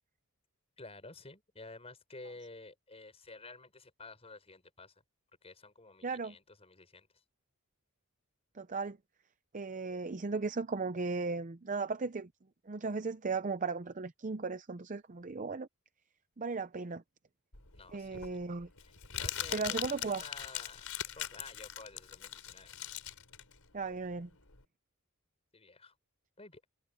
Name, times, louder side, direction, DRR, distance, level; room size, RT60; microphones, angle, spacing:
voice 1, 0.8-4.9 5.4-7.1 17.7-18.5 18.8-18.9 19.2-22.7 25.5-25.9 26.4-26.7, left 3 dB, 30° left, 5.0 m, -52 dB
voice 2, 6.0-6.3 8.6-9.0 9.5-12.3 12.7-15.7 16.4-17.0 17.9-18.7 19.5-20.2 23.7-24.3, right 4 dB, 35° right, 0.6 m, -36 dB
Crumpling crinkling, 17.5-24.6, left 10 dB, 75° left, 5.0 m, -41 dB
head